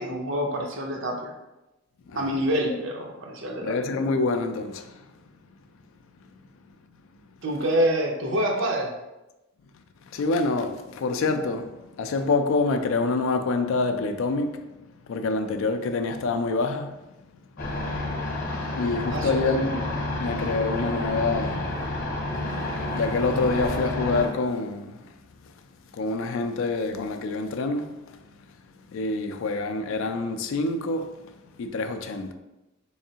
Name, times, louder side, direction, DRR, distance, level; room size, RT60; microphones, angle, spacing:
voice 1, 0.0-1.3 2.1-3.8 7.4-8.9 19.1-19.4, equal, 60° right, 0.6 m, -26 dB
voice 2, 3.6-5.1 10.0-14.7 15.1-16.9 17.5-17.7 18.7-19.9 20.2-21.8 22.9-25.2 25.4-25.5 25.9-28.2 28.9-31.2 31.5-32.3, left 3 dB, 65° left, 0.3 m, -26 dB
sound 1, 17.6-24.3, left 2 dB, 40° left, 0.7 m, -30 dB
3.6 x 3.1 x 2.7 m
head